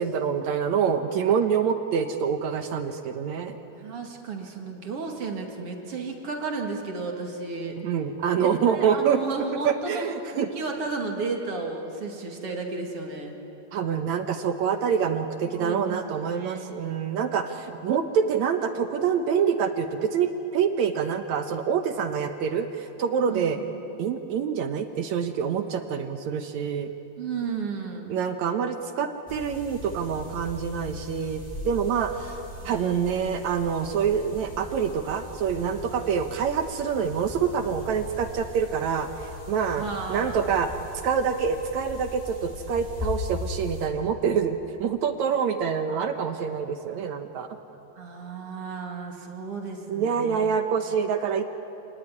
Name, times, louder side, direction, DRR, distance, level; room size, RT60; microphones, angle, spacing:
voice 1, 0.0-3.6 7.8-9.2 9.6-10.5 13.7-23.6 24.0-26.9 28.1-32.3 32.6-39.1 39.5-40.7 41.0-47.5 49.9-51.4, right 7 dB, 65° right, 7 dB, 1.9 m, -26 dB
voice 2, 3.8-7.8 8.4-13.3 15.5-17.2 23.2-23.7 27.2-28.2 32.6-33.1 39.7-40.5 48.0-50.5, right 4 dB, 45° right, 2 dB, 3.1 m, -33 dB
sound 1, 29.3-43.9, left 2 dB, 5° left, 4.8 m, -39 dB
28.0 x 18.5 x 9.7 m, 3.0 s
omnidirectional pair, 4.1 m